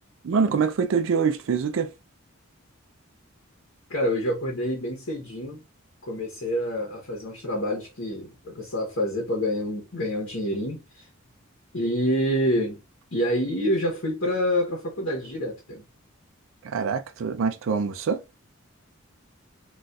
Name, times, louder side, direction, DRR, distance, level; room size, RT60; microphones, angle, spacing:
voice 1, 0.2-1.9 16.6-18.2, right 5 dB, 70° right, 0.4 m, -25 dB
voice 2, 3.9-5.6 6.0-11.0 11.7-12.8 13.1-15.8, equal, 65° left, 1.0 m, -27 dB
4.0 x 2.4 x 2.3 m
head